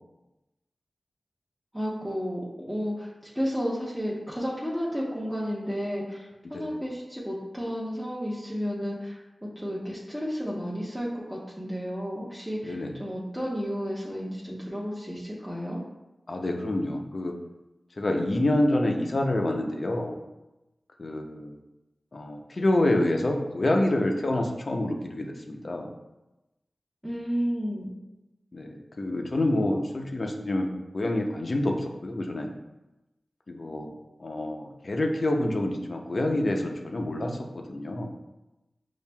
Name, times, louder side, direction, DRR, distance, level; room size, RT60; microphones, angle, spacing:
voice 1, 1.7-2.4 2.7-3.1 3.3-15.8 27.0-27.9, equal, 5° right, -6 dB, 0.8 m, -32 dB
voice 2, 12.6-13.0 16.3-17.3 18.0-20.2 21.0-21.6 22.1-25.9 28.5-30.7 30.9-32.5 33.5-33.9 34.2-37.4 37.7-38.1, left 1 dB, 60° left, 2 dB, 0.5 m, -27 dB
5.6 x 2.5 x 2.2 m, 0.98 s
cardioid pair, 45°, 0 cm